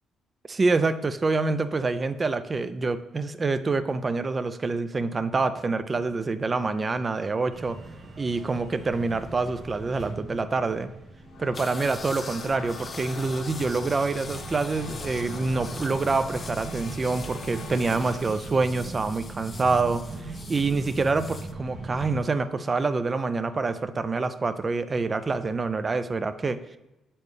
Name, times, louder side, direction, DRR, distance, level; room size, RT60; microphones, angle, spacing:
voice 1, 0.5-7.8 8.2-10.9 11.4-26.8, right 3 dB, 30° right, 12 dB, 0.4 m, -26 dB
sound 1, 7.5-22.2, right 3 dB, 50° right, 1.2 m, -40 dB
sound 2, 11.1-18.8, left 3 dB, 70° left, 0.9 m, -41 dB
sound 3, 11.5-21.5, left 4 dB, 35° left, 0.4 m, -44 dB
7.1 x 4.3 x 3.3 m, 0.98 s
cardioid pair, 90°, 0 cm